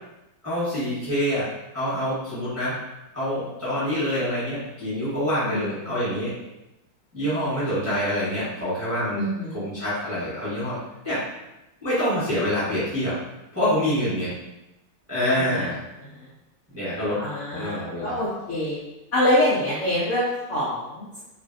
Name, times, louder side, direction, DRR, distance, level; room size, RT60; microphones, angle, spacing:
voice 1, 0.4-2.8 3.1-6.4 7.1-9.2 9.5-10.8 11.0-11.3 11.8-13.2 13.5-14.3 15.1-15.8 16.7-17.2 17.5-18.2, equal, 10° right, -11 dB, 0.9 m, -26 dB
voice 2, 5.4-5.9 9.2-9.6 15.3-15.6 17.2-18.8 19.1-21.2, left 1 dB, 80° left, -8 dB, 0.6 m, -25 dB
3.2 x 2.4 x 2.5 m, 0.96 s
omnidirectional pair, 2.1 m